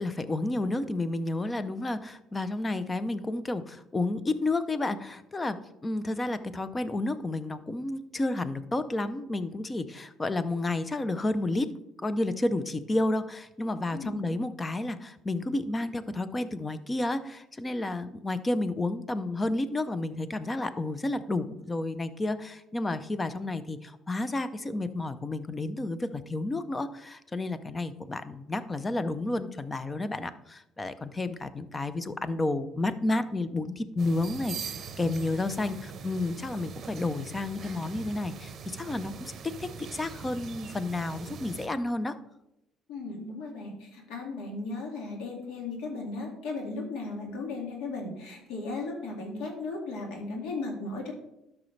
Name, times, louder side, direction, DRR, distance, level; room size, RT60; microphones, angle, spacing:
voice 1, 0.0-11.7 12.0-39.3 39.6-42.1, left 2 dB, 20° left, 13 dB, 0.6 m, -31 dB
voice 2, 13.9-14.3 42.9-51.1, left 3 dB, 80° left, 1 dB, 2.2 m, -36 dB
sound 1, 34.0-41.7, right 6 dB, 45° right, 0.8 m, -42 dB
12.0 x 5.9 x 3.3 m, 0.88 s
cardioid pair, 100°, 0 cm